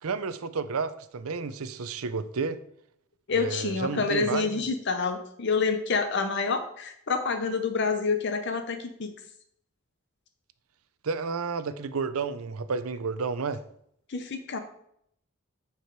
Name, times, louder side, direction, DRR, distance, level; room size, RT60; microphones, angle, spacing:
voice 1, 0.0-2.6 3.3-4.6 11.0-13.6, right 4 dB, 80° right, 13 dB, 0.6 m, -31 dB
voice 2, 3.3-9.1 14.1-14.6, left 4 dB, 50° left, 7 dB, 0.7 m, -28 dB
9.3 x 5.0 x 4.6 m, 0.71 s
head